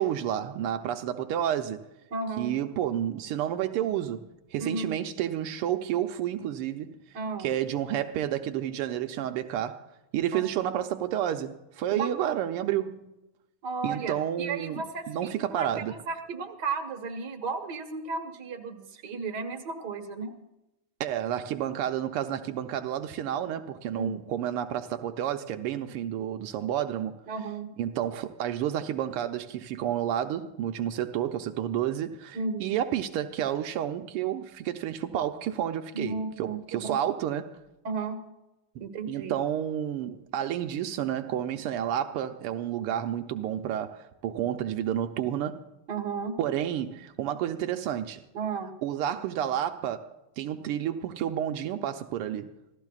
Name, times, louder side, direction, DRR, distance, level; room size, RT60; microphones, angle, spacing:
voice 1, 0.0-1.9 2.4-7.0 7.4-9.9 10.1-13.1 13.8-14.8 15.1-16.0 21.0-27.2 27.8-37.6 39.1-45.7 46.4-48.2 48.8-52.5, right 10 dB, 85° right, 1.7 m, -30 dB
voice 2, 2.1-2.5 4.6-5.0 7.1-7.5 10.3-10.4 11.9-12.1 13.6-20.3 23.9-24.1 27.3-27.7 32.3-32.7 35.9-37.0 37.8-38.2 38.8-39.3 45.9-46.3 48.3-48.7, right 4 dB, 50° right, 1.9 m, -34 dB
27.0 x 15.5 x 2.4 m
omnidirectional pair, 2.4 m